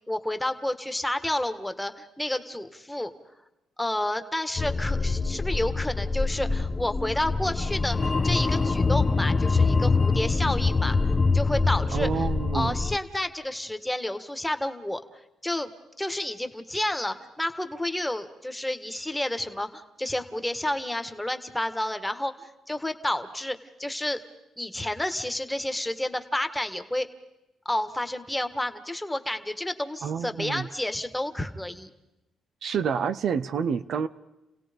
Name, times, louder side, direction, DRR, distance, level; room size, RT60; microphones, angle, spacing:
voice 1, 0.1-3.1 3.8-11.0 11.3-12.2 12.5-15.0 15.4-15.7 16.0-24.2 24.6-27.1 27.6-31.9, left 1 dB, 5° left, 8 dB, 1.5 m, -30 dB
sound 1, 4.6-13.0, left 4 dB, 25° left, 0.7 m, -25 dB
voice 2, 11.9-12.7 30.0-30.7 32.6-34.1, right 6 dB, 65° right, 10 dB, 0.8 m, -28 dB
30.0 x 17.0 x 5.3 m, 0.96 s
cardioid pair, 90°, 0 cm